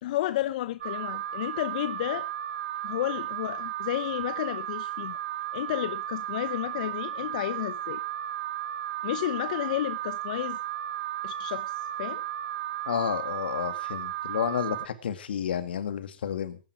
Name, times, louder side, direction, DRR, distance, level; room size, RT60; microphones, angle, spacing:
voice 1, 0.0-2.3 2.8-5.2 5.5-8.0 9.0-10.6 11.2-12.2, left 14 dB, 50° left, 0.6 m, -32 dB
Alarm, 0.8-14.9, right 12 dB, 60° right, 1.3 m, -34 dB
voice 2, 12.9-16.6, left 8 dB, 70° left, 2.2 m, -31 dB
18.5 x 10.0 x 4.9 m
hypercardioid pair, 150°, 6 cm